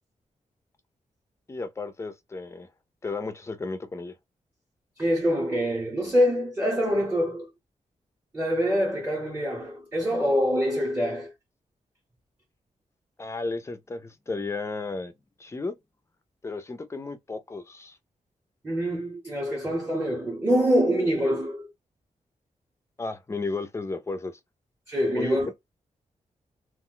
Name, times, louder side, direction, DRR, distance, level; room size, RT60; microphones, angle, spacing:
voice 1, 1.5-2.7 3.0-4.1 13.2-15.1 15.4-15.8 16.4-18.0 23.0-24.4 25.2-25.5, left 3 dB, 20° left, 0.4 m, -33 dB
voice 2, 5.0-7.5 8.3-11.3 18.6-21.7 24.9-25.5, equal, 15° right, 0.8 m, -25 dB
2.4 x 2.1 x 3.8 m
wide cardioid pair, 170°, 14 cm